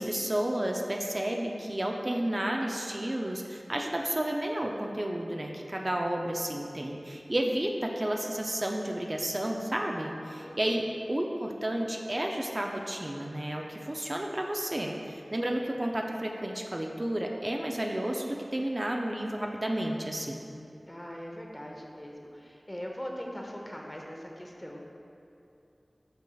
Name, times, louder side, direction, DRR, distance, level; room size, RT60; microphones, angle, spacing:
voice 1, 0.0-20.4, right 1 dB, 40° right, 1 dB, 0.4 m, -31 dB
voice 2, 10.4-10.8 20.9-24.8, equal, 20° left, -1 dB, 0.7 m, -41 dB
7.9 x 5.3 x 2.3 m, 2.7 s
wide cardioid pair, 60°, 0 cm